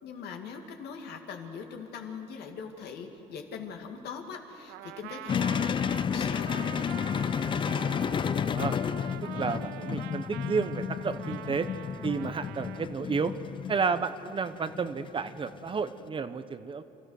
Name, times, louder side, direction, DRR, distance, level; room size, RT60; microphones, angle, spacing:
voice 1, 0.0-6.9, left 6 dB, 75° left, 3 dB, 2.3 m, -41 dB
Trumpet, 4.7-12.9, right 17 dB, 90° right, 0.4 m, -44 dB
sound 1, 5.3-16.0, left 7 dB, 30° left, 0.4 m, -31 dB
voice 2, 8.4-8.8 9.4-11.7 12.0-13.3 13.7-16.8, right 5 dB, 30° right, 11 dB, 0.8 m, -31 dB
29.0 x 14.0 x 6.5 m, 2.8 s
cardioid pair, 110°, 17 cm